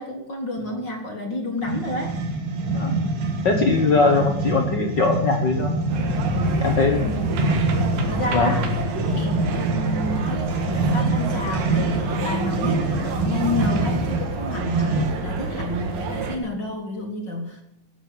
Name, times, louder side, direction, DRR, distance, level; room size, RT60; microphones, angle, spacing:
voice 1, 0.0-2.2 7.0-7.6 8.1-8.7 9.1-17.6, left 2 dB, 40° left, 2 dB, 1.7 m, -30 dB
sound 1, 1.6-15.3, right 2 dB, 55° right, 2.6 m, -25 dB
voice 2, 3.4-5.7 6.6-7.1 8.3-8.5, left 4 dB, 65° left, 2 dB, 1.1 m, -21 dB
sound 2, 5.9-16.4, right 2 dB, 70° right, 3.4 m, -28 dB
18.0 x 7.3 x 7.4 m, 0.83 s
omnidirectional pair, 4.1 m